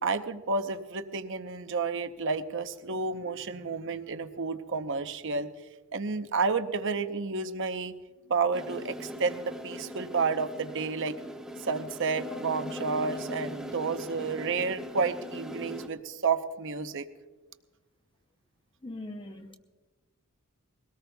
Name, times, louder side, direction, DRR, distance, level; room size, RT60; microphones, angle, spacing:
voice 1, 0.0-5.5 5.9-7.9 8.3-11.2 11.6-17.1, right 4 dB, 60° right, 0.8 m, -31 dB
sound 1, 8.5-15.9, equal, 5° right, 1.1 m, -40 dB
voice 2, 18.8-19.5, left 1 dB, 25° left, 0.8 m, -40 dB
21.5 x 18.0 x 2.3 m
head